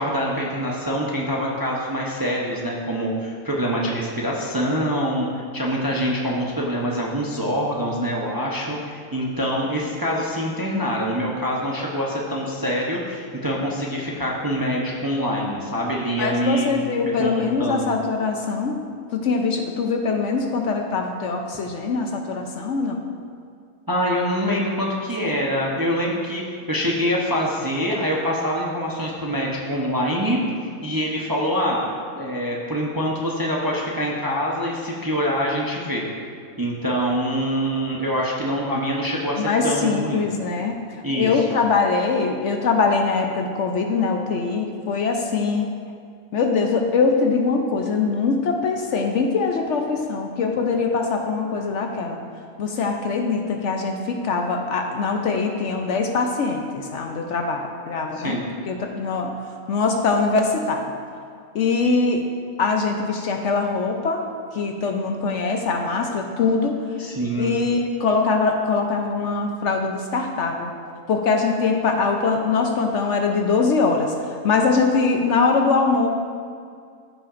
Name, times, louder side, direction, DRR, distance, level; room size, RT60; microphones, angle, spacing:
voice 1, 0.0-5.3 5.5-16.7 17.2-17.3 17.6-17.9 23.9-26.4 26.7-30.4 30.8-31.9 32.1-36.0 36.6-40.3 41.0-41.6 58.1-58.4 67.0-67.5, equal, 20° right, -3 dB, 0.6 m, -25 dB
voice 2, 16.2-18.8 19.1-23.0 25.2-25.4 39.4-40.7 41.1-45.7 46.3-52.2 52.6-58.4 58.7-59.3 59.7-60.9 61.5-62.2 62.6-64.2 64.5-66.8 67.4-70.7 71.1-76.1, left 4 dB, 65° left, 3 dB, 0.9 m, -22 dB
14.0 x 5.7 x 2.5 m, 2.2 s
omnidirectional pair, 1.5 m